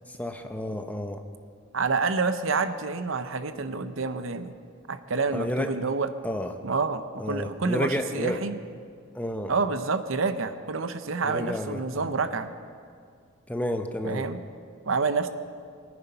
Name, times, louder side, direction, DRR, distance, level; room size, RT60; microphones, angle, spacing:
voice 1, 0.1-1.2 5.3-5.7 6.2-6.5 7.2-8.4 9.1-9.5 11.2-12.1 13.5-14.3, left 1 dB, 5° left, 6 dB, 0.7 m, -31 dB
voice 2, 1.7-4.5 4.9-6.1 6.6-8.6 9.5-12.5 14.0-14.4 14.9-15.3, right 4 dB, 70° right, 10 dB, 0.8 m, -28 dB
22.5 x 9.8 x 5.5 m, 2.2 s
head